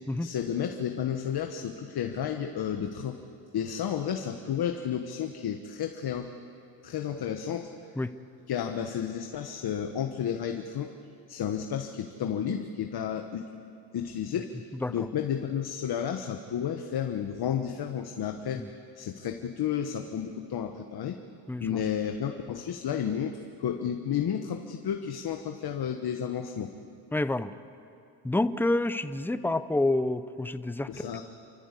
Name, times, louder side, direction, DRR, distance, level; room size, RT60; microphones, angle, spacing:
voice 1, 0.2-3.2 3.5-6.3 6.8-7.7 8.5-10.9 11.3-13.5 13.9-14.5 14.9-18.6 18.9-21.2 21.6-26.7 30.9-31.2, left 8 dB, 50° left, 5 dB, 1.3 m, -32 dB
voice 2, 21.5-21.8 27.1-27.5 28.2-31.1, left 2 dB, 5° left, 13 dB, 0.6 m, -28 dB
28.5 x 14.0 x 8.4 m, 2.6 s
cardioid pair, 105°, 49 cm